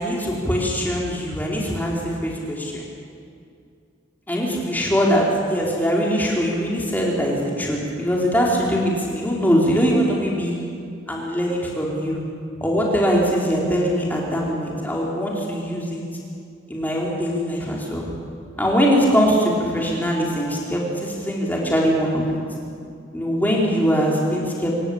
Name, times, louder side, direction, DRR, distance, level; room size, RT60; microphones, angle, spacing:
voice 1, 0.0-2.8 4.3-10.5 11.1-12.2 12.6-16.0 16.7-18.1 18.6-22.2 23.1-24.7, equal, 10° left, -3 dB, 4.4 m, -22 dB
27.0 x 16.0 x 8.7 m, 2.4 s
head